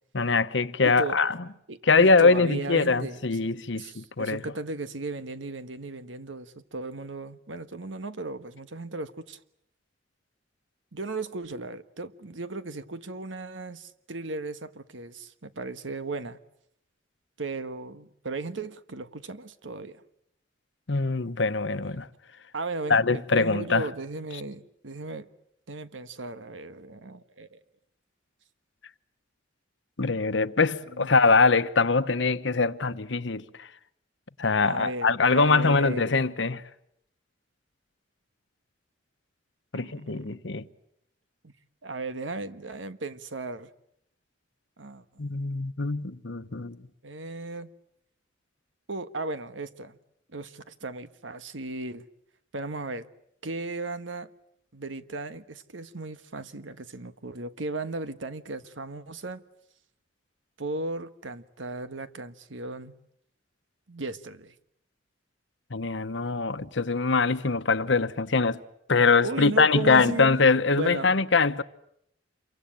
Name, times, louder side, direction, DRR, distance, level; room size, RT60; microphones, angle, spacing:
voice 1, 0.1-1.4 1.9-4.4 20.9-22.1 22.9-23.9 30.0-33.7 34.4-36.6 39.7-40.7 45.2-46.8 65.7-68.6 68.9-71.6, left 4 dB, 75° left, 1.1 m, -23 dB
voice 2, 0.8-1.2 1.7-9.4 10.9-16.4 17.4-20.0 22.5-25.3 25.7-27.6 30.9-31.1 34.6-36.1 39.7-40.3 41.4-41.5 41.8-43.7 44.8-45.0 47.0-47.7 48.9-50.0 50.3-52.0 52.5-53.1 53.4-54.3 54.7-59.4 60.6-62.9 63.9-64.5 69.2-70.3 70.7-71.1, right 2 dB, 85° right, 1.4 m, -36 dB
28.0 x 23.5 x 9.0 m
head